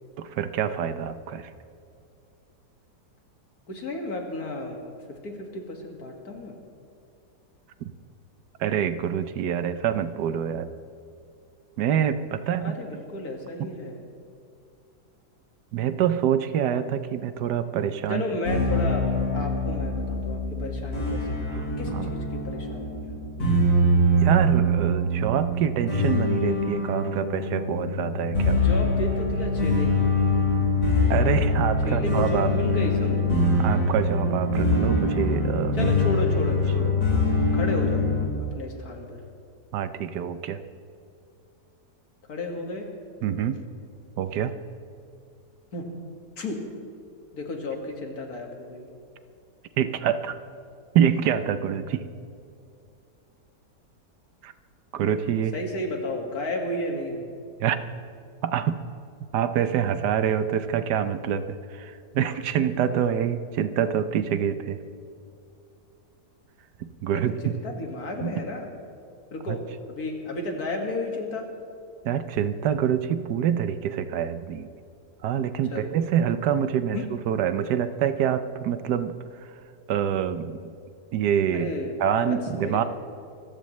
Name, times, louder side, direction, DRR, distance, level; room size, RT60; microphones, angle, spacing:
voice 1, 0.2-1.5 7.8-7.9 8.6-10.7 11.8-12.8 15.7-18.2 21.5-21.6 21.9-22.1 24.2-28.6 31.1-32.5 33.6-35.9 39.7-40.6 43.2-43.6 44.2-44.5 49.8-50.4 50.9-52.0 54.4-54.5 54.9-55.5 57.6-57.8 58.4-58.8 59.3-64.8 66.8-67.5 68.2-68.3 69.5-69.6 72.0-74.7 75.2-77.0 77.3-79.1 79.9-80.6 81.1-81.7 82.0-82.8, right 9 dB, 80° right, 11 dB, 1.3 m, -26 dB
voice 2, 3.7-6.5 12.6-14.0 18.1-19.1 19.3-23.5 28.5-30.1 31.8-33.4 35.7-37.0 37.5-39.2 42.3-42.9 45.7-45.9 46.4-46.6 47.3-48.9 55.5-57.3 67.1-68.7 69.3-69.6 69.9-71.5 75.7-76.1 76.9-77.1 81.5-82.0 82.2-82.8, left 1 dB, 60° left, 2 dB, 2.4 m, -33 dB
sound 1, 18.4-38.2, left 1 dB, 75° left, 5.0 m, -24 dB
26.5 x 14.5 x 3.2 m, 2.5 s
omnidirectional pair, 1.8 m